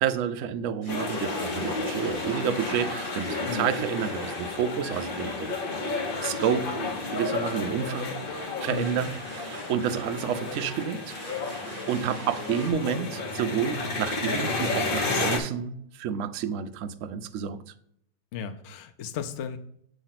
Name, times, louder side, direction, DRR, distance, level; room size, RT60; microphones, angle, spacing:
voice 1, 0.0-5.6 6.2-6.8 7.1-11.2 11.6-17.6, right 8 dB, 75° right, 9 dB, 0.7 m, -30 dB
Domestic sounds home sounds, 0.8-12.7, right 2 dB, 30° right, 2.3 m, -45 dB
sound 1, 0.9-15.4, left 3 dB, 40° left, 0.9 m, -32 dB
voice 2, 8.7-9.0 18.3-19.6, left 7 dB, 85° left, 8 dB, 0.6 m, -34 dB
7.5 x 3.2 x 5.7 m, 0.69 s
omnidirectional pair, 1.9 m